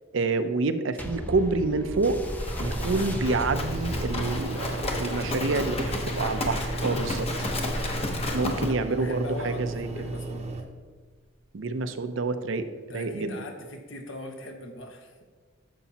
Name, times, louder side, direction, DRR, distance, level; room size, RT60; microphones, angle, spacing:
voice 1, 0.1-2.2 2.6-7.3 8.3-9.9 11.5-13.4, right 3 dB, 65° right, 10 dB, 0.5 m, -28 dB
sound 1, 1.0-9.8 10.5-10.6, left 1 dB, 10° left, 0.5 m, -39 dB
Livestock farm animals working animals, 2.2-8.7, left 2 dB, 30° left, 0.9 m, -32 dB
sound 2, 2.6-10.6, right 2 dB, 30° right, 0.8 m, -35 dB
voice 2, 5.2-5.6 7.1-7.7 8.6-10.5 12.9-15.2, left 2 dB, 70° left, 3 dB, 1.1 m, -41 dB
11.0 x 6.9 x 2.9 m, 1.5 s
head